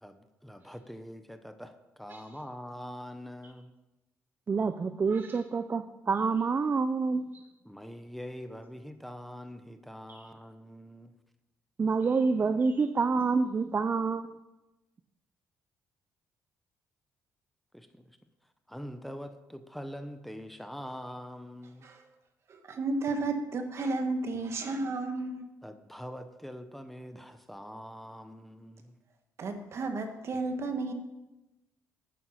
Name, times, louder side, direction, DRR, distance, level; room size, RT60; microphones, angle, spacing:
voice 1, 0.0-3.7 7.6-11.1 17.7-18.2 18.7-21.9 25.6-29.0, equal, ahead, 9 dB, 0.9 m, -44 dB
voice 2, 4.5-7.4 10.1-10.2 11.8-14.3, right 4 dB, 35° right, 10 dB, 0.6 m, -28 dB
voice 3, 22.5-25.4 29.4-30.9, right 3 dB, 55° right, 6 dB, 1.7 m, -32 dB
10.0 x 9.5 x 5.8 m, 1.0 s
cardioid pair, 85°, 6 cm